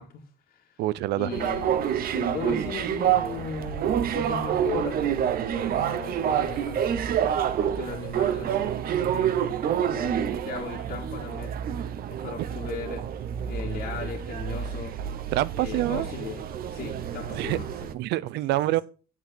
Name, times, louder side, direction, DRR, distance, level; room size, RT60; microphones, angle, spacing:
voice 1, 0.0-0.8 1.1-7.1 7.6-9.6 9.9-11.6 12.1-13.1 13.5-15.0 15.5-17.9, left 6 dB, 60° left, 2.0 m, -38 dB
voice 2, 0.8-1.3 12.4-12.5 15.3-16.1 17.4-17.6 17.9-18.8, right 15 dB, 80° right, 0.6 m, -26 dB
sound 1, 1.3-17.9, right 9 dB, 60° right, 1.0 m, -28 dB
8.3 x 7.0 x 6.2 m
cardioid pair, 110°, 17 cm